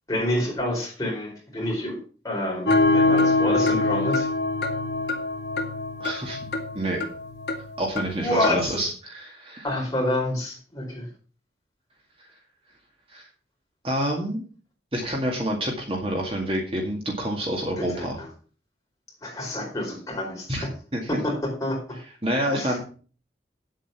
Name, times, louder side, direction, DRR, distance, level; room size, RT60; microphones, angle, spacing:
voice 1, 0.1-2.0 2.2-4.3 8.2-8.8 9.6-11.1 17.8-18.3 19.2-20.7 21.1-21.8 22.5-22.8, left 1 dB, 20° left, -2 dB, 4.6 m, -28 dB
sound 1, 2.7-8.7, left 2 dB, 70° left, 2.2 m, -24 dB
voice 2, 6.0-6.4 6.7-7.0 7.8-9.6 13.1-13.3 13.8-14.4 14.9-18.2 20.5-20.7 20.9-21.0 22.2-22.8, right 1 dB, 30° right, 1 dB, 2.0 m, -28 dB
9.1 x 7.9 x 5.9 m, 0.40 s
head